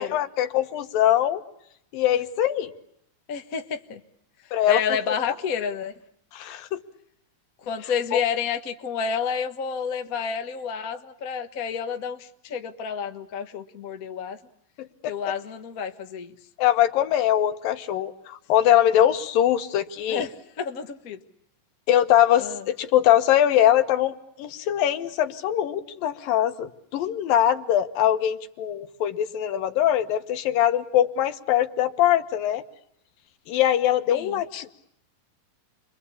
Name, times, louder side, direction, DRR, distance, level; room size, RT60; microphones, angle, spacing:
voice 1, 0.0-1.4 1.9-2.7 4.5-4.8 6.3-6.8 8.1-8.2 15.0-15.1 16.6-20.3 21.9-32.6 33.5-34.7, left 11 dB, 85° left, 9 dB, 3.0 m, -22 dB
voice 2, 3.3-4.0 4.7-5.9 7.6-14.4 15.1-16.3 20.1-21.2 22.4-22.6 34.1-34.4, left 6 dB, 60° left, 7 dB, 0.9 m, -30 dB
30.0 x 23.0 x 8.4 m, 0.76 s
omnidirectional pair, 3.9 m